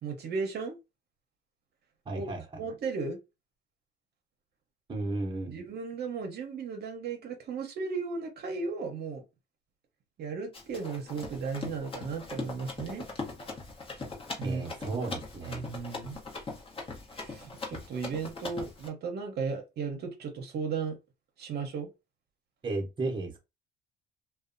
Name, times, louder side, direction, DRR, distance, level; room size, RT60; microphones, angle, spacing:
voice 1, 0.0-0.8 2.1-2.3 2.6-3.2 5.5-9.2 10.2-13.1 14.4-14.6 14.9-15.1 15.5-16.2 17.2-21.0 21.4-21.9, right 5 dB, 55° right, 0.7 m, -35 dB
voice 2, 2.1-2.7 4.9-5.6 14.4-15.6 22.6-23.4, right 2 dB, 25° right, 0.8 m, -34 dB
Run, 10.5-18.9, left 3 dB, 30° left, 0.8 m, -40 dB
2.7 x 2.2 x 2.5 m
cardioid pair, 120°, 20 cm